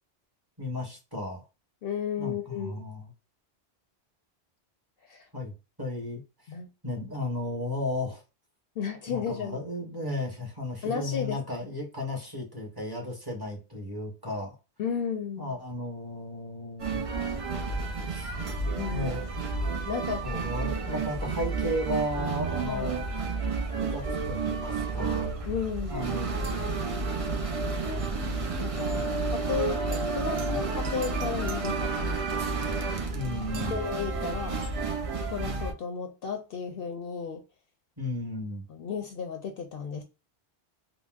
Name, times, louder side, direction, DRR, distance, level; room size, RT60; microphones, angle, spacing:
voice 1, 0.6-1.4 2.2-3.1 5.3-5.5 5.8-6.2 6.8-8.2 9.1-14.6 15.4-17.1 18.1-18.3 18.9-19.3 20.2-23.0 23.8-25.3 25.9-26.9 28.9-29.3 30.5-30.6 33.1-33.8 38.0-38.6, left 1 dB, 20° right, 0.9 m, -34 dB
voice 2, 1.8-2.8 5.0-5.3 6.5-6.7 8.8-9.6 10.8-11.4 14.8-15.6 18.8-19.1 19.9-20.5 22.6-23.0 25.5-26.1 28.6-32.4 33.7-34.6 35.3-37.4 38.7-40.0, left 6 dB, 65° left, 0.7 m, -34 dB
sound 1, 16.8-35.7, right 4 dB, 50° right, 0.4 m, -31 dB
3.9 x 2.0 x 2.3 m
omnidirectional pair, 1.1 m